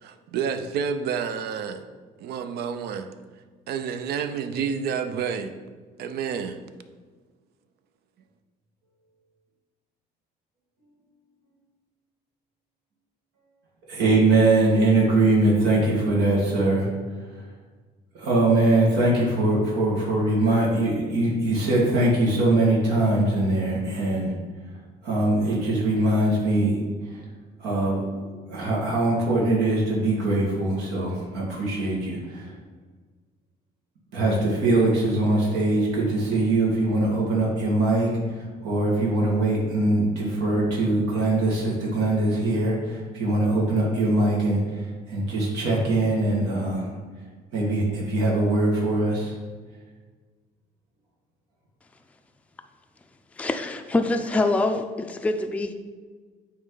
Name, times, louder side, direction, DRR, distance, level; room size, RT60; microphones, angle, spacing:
voice 1, 0.0-1.8 2.2-3.1 3.7-5.5 6.0-6.6, right 7 dB, 70° right, 10 dB, 0.5 m, -29 dB
voice 2, 13.9-16.9 18.2-24.3 25.0-26.8 27.1-27.2 27.6-32.5 34.1-46.9 47.5-49.3, right 2 dB, 85° right, -4 dB, 1.9 m, -22 dB
voice 3, 53.4-55.7, left 2 dB, 10° left, 5 dB, 0.4 m, -25 dB
8.7 x 3.2 x 3.9 m, 1.4 s
cardioid pair, 110°, 17 cm